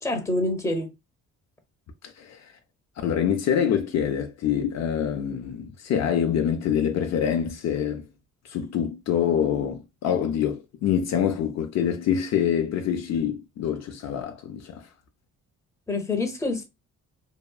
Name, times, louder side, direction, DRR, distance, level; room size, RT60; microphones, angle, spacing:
voice 1, 0.0-0.9 15.9-16.6, left 2 dB, 10° left, 0.7 m, -26 dB
voice 2, 2.2-2.5 3.0-8.1 8.5-14.9, left 8 dB, 60° left, 0.5 m, -25 dB
2.7 x 2.2 x 2.3 m
cardioid pair, 90°, 30 cm